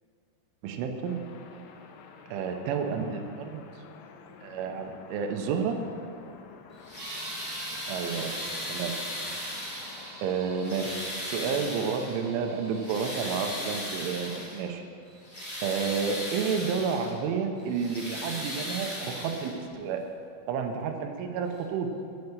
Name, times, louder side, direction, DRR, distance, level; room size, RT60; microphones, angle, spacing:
voice 1, 0.6-1.2 2.3-3.6 4.4-5.8 7.9-8.4 8.7-8.9 10.2-14.8 15.6-20.0 20.5-21.9, right 6 dB, 80° right, 5 dB, 3.1 m, -30 dB
sound 1, 1.1-10.4, left 6 dB, 80° left, 2.7 m, -50 dB
sound 2, 6.7-10.2 10.6-12.2 12.6-14.6 15.1-17.1 17.6-19.7 20.8-20.9 21.5-21.6, left 1 dB, 15° left, 1.7 m, -37 dB
sound 3, 7.0-14.4, right 2 dB, 55° right, 3.1 m, -46 dB
9.0 x 8.6 x 8.2 m, 2.4 s
omnidirectional pair, 5.8 m